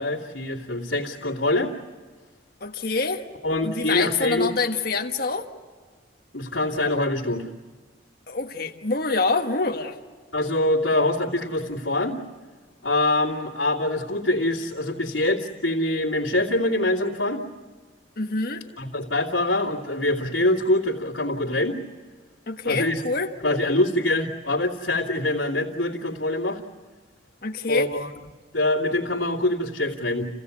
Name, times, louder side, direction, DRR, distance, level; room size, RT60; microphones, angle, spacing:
voice 1, 0.0-1.7 3.4-4.5 6.3-7.5 10.3-12.2 12.8-17.4 18.8-21.8 22.6-23.0 23.4-26.6 27.7-28.1 28.5-30.3, left 1 dB, 85° left, -9 dB, 2.7 m, -24 dB
voice 2, 2.6-3.3 3.6-5.5 8.3-10.0 18.2-18.6 22.5-23.3 27.4-27.9, left 3 dB, 50° left, 4 dB, 1.5 m, -26 dB
29.5 x 16.0 x 8.4 m, 1.5 s
head